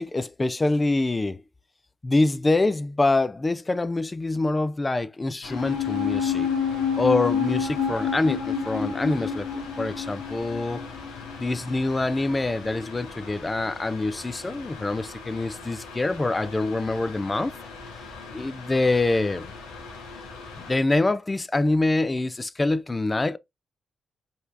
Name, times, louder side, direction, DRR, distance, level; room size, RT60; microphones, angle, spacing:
voice 1, 0.0-1.4 2.0-6.5 7.0-9.5 9.8-10.8 11.4-17.5 18.3-19.5 20.7-23.4, left 2 dB, 30° left, 0.5 m, -25 dB
Mechanical fan, 5.4-20.7, left 4 dB, 90° left, 1.1 m, -42 dB
sound 1, 5.5-12.1 12.3-12.4, left 7 dB, 45° left, 1.4 m, -28 dB
5.2 x 3.4 x 2.5 m
hypercardioid pair, 45°, 0 cm